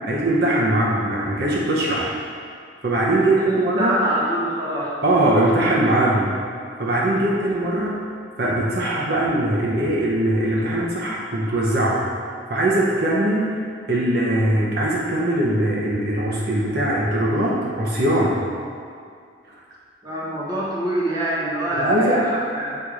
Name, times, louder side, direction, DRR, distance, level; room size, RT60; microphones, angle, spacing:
voice 1, 0.0-2.1 2.8-4.0 5.0-6.4 6.8-8.0 8.4-12.0 12.5-18.4 21.8-22.3, right 1 dB, 60° right, -5 dB, 1.0 m, -21 dB
voice 2, 3.4-5.0 20.0-22.8, right 1 dB, 20° right, -7 dB, 1.3 m, -25 dB
6.7 x 4.3 x 5.0 m, 2.3 s
head